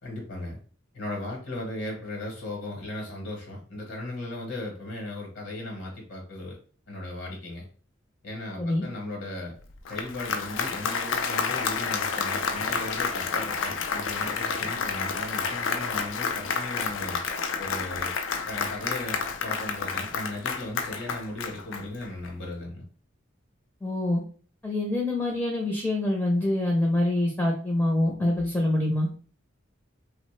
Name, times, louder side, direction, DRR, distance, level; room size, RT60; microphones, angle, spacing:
voice 1, 0.0-0.6 0.9-6.6 6.9-7.7 8.2-9.6 9.9-17.2 17.6-18.1 18.5-22.8, left 1 dB, 70° left, 0 dB, 0.9 m, -37 dB
Applause, 9.7-22.3, left 5 dB, 90° left, 0.4 m, -30 dB
voice 2, 23.8-24.2 24.6-29.1, left 1 dB, 10° left, -1 dB, 0.5 m, -25 dB
2.9 x 2.1 x 3.1 m, 0.41 s
head